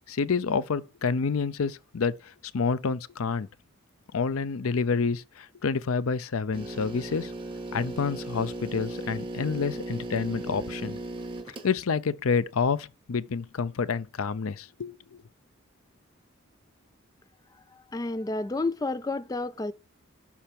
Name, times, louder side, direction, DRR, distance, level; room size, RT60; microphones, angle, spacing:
voice 1, 0.1-2.2 2.5-3.5 4.1-7.3 7.7-11.0 11.6-15.0, left 5 dB, 85° left, 0.5 m, -28 dB
sound 1, 6.5-11.7, right 1 dB, 25° right, 1.4 m, -37 dB
voice 2, 17.7-19.7, left 2 dB, 15° left, 0.3 m, -30 dB
7.3 x 5.8 x 5.2 m
head